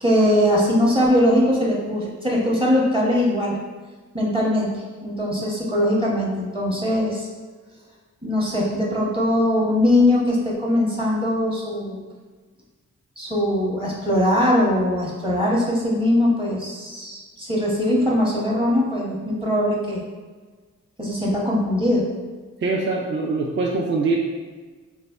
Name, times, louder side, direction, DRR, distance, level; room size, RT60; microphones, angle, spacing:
voice 1, 0.0-3.6 4.1-7.3 8.2-12.0 13.2-20.0 21.0-22.1, left 1 dB, 15° right, -4 dB, 0.8 m, -21 dB
voice 2, 22.6-24.2, right 3 dB, 40° right, -1 dB, 0.4 m, -23 dB
3.2 x 2.1 x 2.3 m, 1.4 s
cardioid pair, 40°, 31 cm